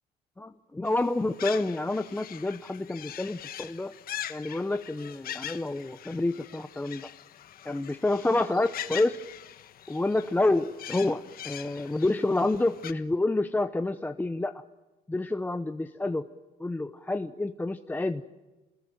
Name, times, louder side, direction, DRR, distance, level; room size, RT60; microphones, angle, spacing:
voice 1, 0.4-3.9 4.3-7.1 7.6-9.2 9.9-14.6 15.1-16.3 16.6-18.2, left 2 dB, 10° left, 8 dB, 0.8 m, -28 dB
sound 1, 0.9-12.9, left 11 dB, 60° left, 1.3 m, -42 dB
28.0 x 20.5 x 9.0 m, 1.2 s
cardioid pair, 110°, 17 cm